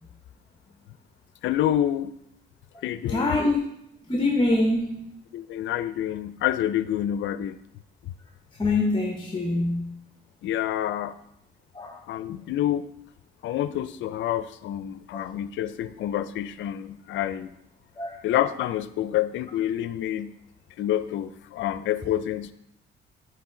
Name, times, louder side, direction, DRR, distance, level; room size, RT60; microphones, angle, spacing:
voice 1, 1.4-2.1 2.8-3.4 5.3-7.6 10.4-11.1 12.1-12.9 13.4-17.5 18.2-20.3 20.8-22.5, left 11 dB, 75° left, 0.4 m, -27 dB
voice 2, 3.1-3.6 4.1-5.1 8.6-9.9 11.7-11.9 18.0-18.2, left 2 dB, 25° left, 0.9 m, -24 dB
9.3 x 3.2 x 3.8 m
cardioid pair, 90°, 20 cm